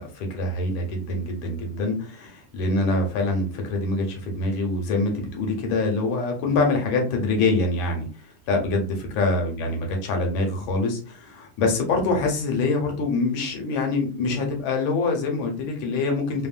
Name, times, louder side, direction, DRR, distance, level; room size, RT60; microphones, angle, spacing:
voice 1, 0.0-16.5, left 3 dB, 85° left, 2 dB, 1.6 m, -25 dB
3.5 x 2.1 x 2.4 m, 0.38 s
omnidirectional pair, 2.1 m